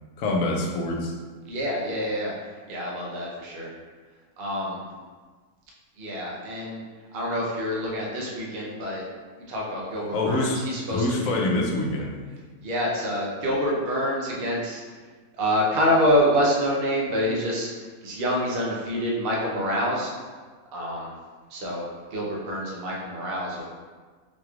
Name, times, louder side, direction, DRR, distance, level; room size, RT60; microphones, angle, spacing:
voice 1, 0.2-1.1 10.1-10.6 10.9-12.1, left 2 dB, 70° left, 0 dB, 1.0 m, -25 dB
voice 2, 1.5-2.3 2.7-3.7 4.4-4.8 6.0-6.8 7.1-9.0 9.5-11.1 12.6-14.8 15.4-17.7 18.0-20.1 20.7-21.1 21.5-23.6, equal, 50° right, -3 dB, 0.8 m, -26 dB
4.1 x 3.1 x 2.3 m, 1.4 s
omnidirectional pair, 1.6 m